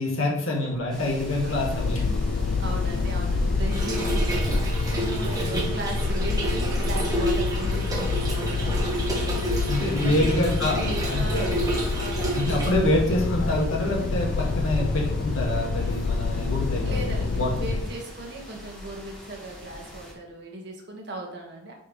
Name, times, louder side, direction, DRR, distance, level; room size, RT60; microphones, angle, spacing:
voice 1, 0.0-2.2 9.7-11.5 12.3-16.8 17.4-17.5, left 1 dB, 85° left, -2 dB, 2.1 m, -26 dB
sound 1, 0.8-18.0, left 4 dB, 55° left, 0.4 m, -27 dB
breeze tree, 0.9-20.1, equal, 5° left, 1.7 m, -38 dB
voice 2, 2.6-10.3 10.6-12.5 16.8-21.7, right 2 dB, 55° right, 0 dB, 1.7 m, -37 dB
Trickle dribble / Fill (with liquid), 3.7-12.7, right 2 dB, 20° right, 1.4 m, -30 dB
9.5 x 4.9 x 3.3 m, 0.77 s
head